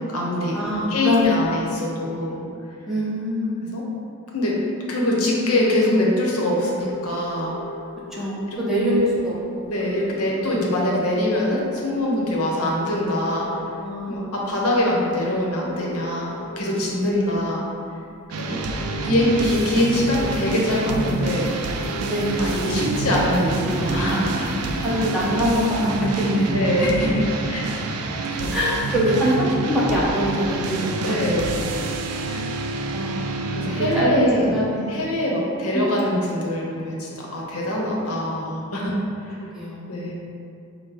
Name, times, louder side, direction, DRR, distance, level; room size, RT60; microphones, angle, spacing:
voice 1, 0.0-0.6 0.9-2.4 3.7-3.8 4.3-4.6 4.9-7.5 8.1-8.2 8.5-8.6 9.7-13.5 14.1-17.6 18.4-18.6 19.0-21.5 22.4-24.5 26.5-27.6 28.4-28.5 31.0-31.6 33.5-34.5 34.9-38.9 39.3-39.4 39.9-40.1, left 1 dB, 75° left, -3 dB, 0.9 m, -23 dB
voice 2, 0.5-1.3 2.1-2.5 2.9-3.9 8.1-9.7 13.8-14.3 17.0-17.4 22.0-22.5 24.8-26.7 28.5-31.6 32.3-32.5 32.9-33.5 33.9-34.9 35.7-36.1 38.0-38.2 39.5-40.0, equal, ahead, -9 dB, 0.9 m, -24 dB
sound 1, 6.8-7.8 9.0-9.1 9.4-9.5 9.6-11.1 11.6-11.8 12.6-13.8 14.5-14.7 15.7-16.8 18.0-18.1 18.6-19.8 20.5-20.6 20.9-21.0 21.2-21.3 21.5-22.8 23.1-25.3, left 1 dB, 55° left, 0.4 m, -37 dB
sound 2, 18.3-34.3, right 3 dB, 85° right, 0.4 m, -27 dB
5.3 x 2.1 x 4.5 m, 2.5 s
head